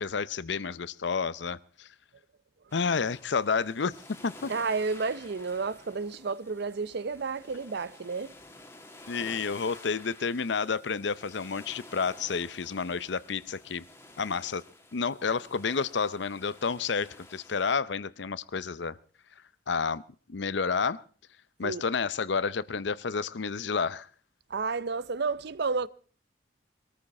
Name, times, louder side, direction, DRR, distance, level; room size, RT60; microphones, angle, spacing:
voice 1, 0.0-1.9 2.7-4.5 9.1-13.8 14.2-14.6 14.9-19.0 19.7-20.0 20.3-21.0 21.6-24.1, left 5 dB, 70° left, 0.6 m, -30 dB
sound 1, 2.7-17.7, left 2 dB, 15° left, 1.7 m, -51 dB
voice 2, 4.5-8.4 21.6-21.8 24.5-25.9, right 4 dB, 65° right, 0.6 m, -31 dB
21.5 x 13.5 x 4.2 m
head